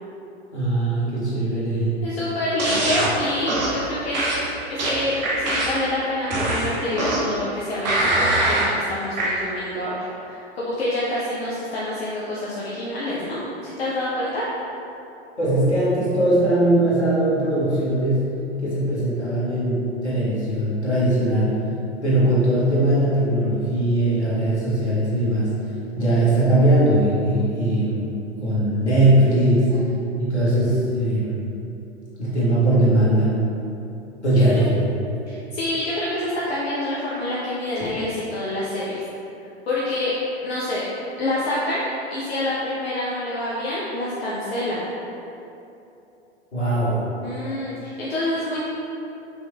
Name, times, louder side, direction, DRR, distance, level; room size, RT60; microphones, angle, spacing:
voice 1, 0.5-1.9 15.4-18.3 18.6-21.6 22.0-25.5 25.9-28.1 28.4-29.7 30.2-31.3 32.2-33.4 34.2-34.9 46.5-47.0, right 1 dB, 85° left, -9 dB, 1.5 m, -20 dB
voice 2, 2.0-4.2 4.7-14.5 29.7-29.9 34.3-34.6 35.3-39.0 39.7-40.2 40.4-40.8 41.2-44.9 47.2-48.6, left 1 dB, 65° left, -7 dB, 0.7 m, -27 dB
sound 1, 2.6-3.1 3.5-3.8 4.1-5.9 6.3-7.4 7.8-8.7 9.2-9.3, right 1 dB, 40° right, 0.9 m, -23 dB
5.2 x 3.1 x 2.3 m, 2.8 s
figure-of-eight pair, 100°, 33 cm